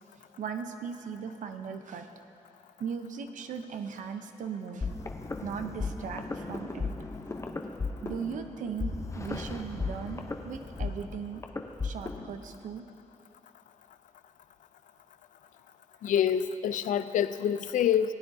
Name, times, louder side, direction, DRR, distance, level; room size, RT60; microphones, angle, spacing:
voice 1, 0.4-2.1 2.8-4.9 5.4-6.9 8.0-11.4 11.8-12.9, right 6 dB, 75° right, 7 dB, 0.7 m, -38 dB
sound 1, 4.8-12.4, left 3 dB, 20° left, 0.7 m, -36 dB
voice 2, 16.0-18.1, left 9 dB, 80° left, 12 dB, 0.4 m, -26 dB
17.5 x 9.5 x 2.7 m, 2.8 s
cardioid pair, 80°, 13 cm